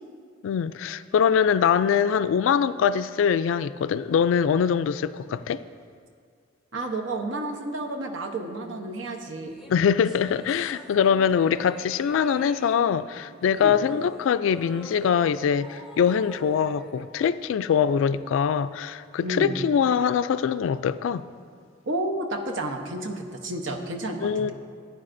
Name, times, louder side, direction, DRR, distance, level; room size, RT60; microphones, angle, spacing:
voice 1, 0.4-5.6 9.7-21.2 24.2-24.5, left 7 dB, 85° left, 0.3 m, -23 dB
voice 2, 6.7-9.5 13.6-13.8 19.2-19.6 21.9-24.5, right 1 dB, 85° right, 0.9 m, -31 dB
sound 1, 9.5-18.1, equal, 5° right, 0.7 m, -46 dB
15.0 x 8.9 x 2.6 m
head